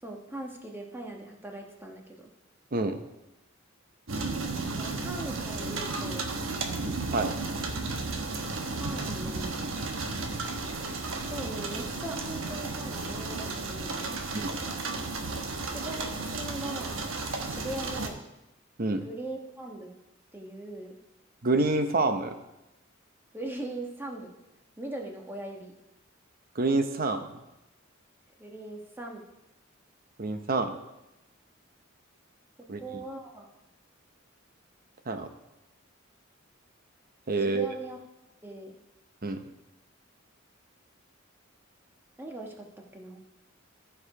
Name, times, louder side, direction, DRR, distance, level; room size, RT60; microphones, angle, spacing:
voice 1, 0.0-2.3 4.7-6.3 8.8-9.6 11.3-14.1 15.7-17.0 17.4-18.2 19.0-19.9 20.3-21.0 23.3-24.3 24.8-25.7 28.4-29.2 32.8-33.5 37.5-38.0 38.4-38.8 42.2-43.2, right 1 dB, 10° right, 1 dB, 1.2 m, -40 dB
sound 1, 4.1-18.1, right 3 dB, 75° right, 1.1 m, -33 dB
voice 2, 21.4-22.3 26.5-27.3 30.2-30.8 32.7-32.8 35.1-35.3 37.3-37.7 39.2-39.4, right 3 dB, 45° right, 7 dB, 0.8 m, -27 dB
14.5 x 4.9 x 4.8 m, 0.93 s
head